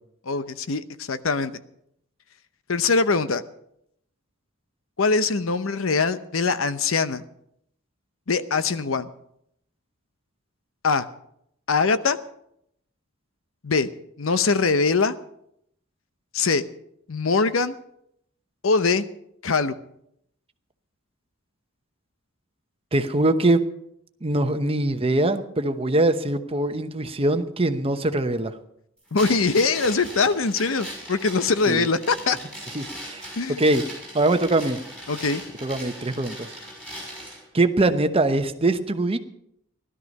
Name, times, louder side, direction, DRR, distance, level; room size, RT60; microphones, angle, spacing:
voice 1, 0.3-1.6 2.7-3.4 5.0-7.2 8.3-9.1 10.8-11.1 11.7-12.2 13.6-13.9 14.2-15.2 16.3-16.6 17.1-17.7 18.6-19.0 19.4-19.8 29.1-32.4 33.4-33.6 35.1-35.4, left 4 dB, 75° left, 12 dB, 0.8 m, -22 dB
voice 2, 22.9-23.6 24.2-28.5 31.7-31.9 32.7-33.3 33.6-33.8 34.1-34.8 35.6-36.6 37.5-39.2, right 2 dB, 30° right, 8 dB, 0.9 m, -22 dB
sound 1, 29.2-37.4, equal, 5° left, 6.2 m, -39 dB
16.5 x 12.5 x 5.4 m, 0.75 s
head